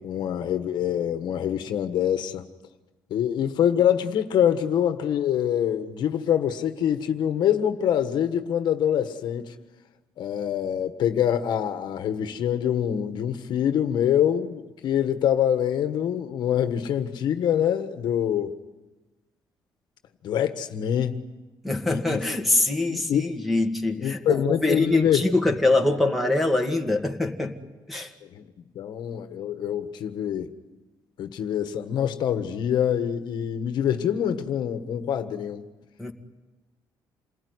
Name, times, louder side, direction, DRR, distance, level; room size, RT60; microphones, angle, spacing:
voice 1, 0.0-2.5 3.1-9.5 10.2-18.5 20.2-21.3 21.9-22.2 22.9-23.3 24.0-25.2 28.2-28.5 28.7-30.5 31.2-35.7, left 9 dB, 65° left, 1.5 m, -25 dB
voice 2, 21.6-27.6 27.9-28.1 36.0-36.1, left 2 dB, ahead, 2.0 m, -24 dB
28.0 x 20.5 x 9.7 m
cardioid pair, 145°, 8 cm